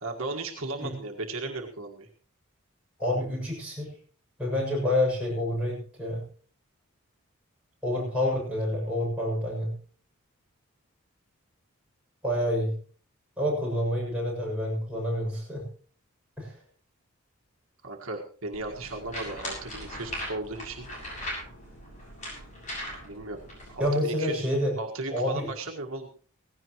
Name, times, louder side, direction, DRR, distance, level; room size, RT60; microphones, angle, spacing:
voice 1, 0.0-2.1 17.8-20.9 23.0-23.4 23.7-24.5 24.8-26.1, right 2 dB, 75° right, 2 dB, 1.7 m, -36 dB
voice 2, 3.0-3.9 4.4-6.2 7.8-9.7 12.2-12.7 13.4-15.6 16.4-16.5 23.8-24.7 25.1-25.5, left 1 dB, 5° right, -4 dB, 6.9 m, -28 dB
sound 1, 18.5-23.9, equal, 35° left, 7.1 m, -39 dB
17.5 x 16.0 x 3.1 m, 0.41 s
head